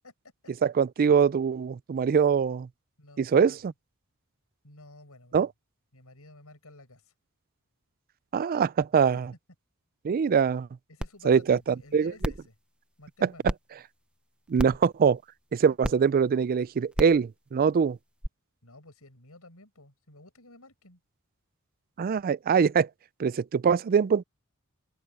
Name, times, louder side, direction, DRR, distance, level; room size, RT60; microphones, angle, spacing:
voice 1, 0.6-2.7 3.2-3.7 5.3-5.5 8.3-9.3 10.0-10.7 11.3-11.6 11.9-12.1 14.5-15.2 15.5-18.0 22.0-22.9 23.2-24.2, right 6 dB, 40° right, 0.3 m, -23 dB
voice 2, 3.0-3.6 4.6-5.5 5.9-7.1 10.9-12.6 13.0-13.5 14.6-14.8 18.6-21.0, left 2 dB, 75° left, 7.9 m, -52 dB
sound 1, 11.0-11.1 11.6-11.7 12.2-12.5 13.5-13.6 14.6-14.8 15.8-15.9 16.9-17.2 18.2-18.3, equal, 5° right, 0.7 m, -30 dB
open air
head